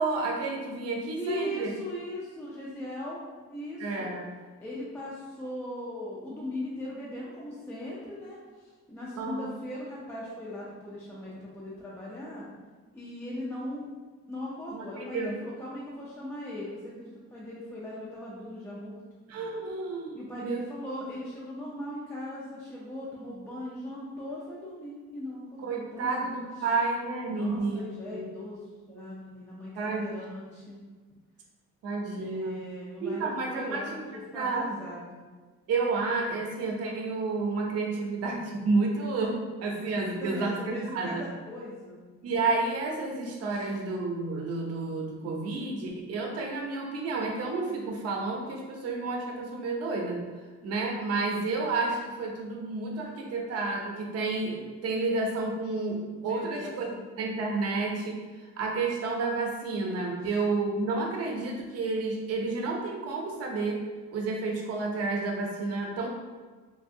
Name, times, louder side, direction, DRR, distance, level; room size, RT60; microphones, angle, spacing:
voice 1, 0.0-1.7 3.8-4.3 9.2-9.5 14.7-15.3 19.3-20.6 21.0-21.1 25.6-28.3 29.8-30.0 31.8-32.6 33.0-34.0 34.3-34.6 35.7-41.2 42.2-50.2 50.6-56.9 57.2-63.8 64.1-66.1, right 3 dB, 55° right, 1 dB, 0.6 m, -30 dB
voice 2, 1.1-3.2 3.5-4.1 4.6-12.4 12.9-13.9 14.3-19.0 20.1-26.3 27.3-28.6 28.9-30.8 32.1-35.2 40.1-42.0 43.5-43.7 56.1-57.1 60.2-60.3, left 1 dB, 10° left, -6 dB, 0.3 m, -39 dB
3.2 x 2.6 x 2.6 m, 1.4 s
cardioid pair, 165°, 30 cm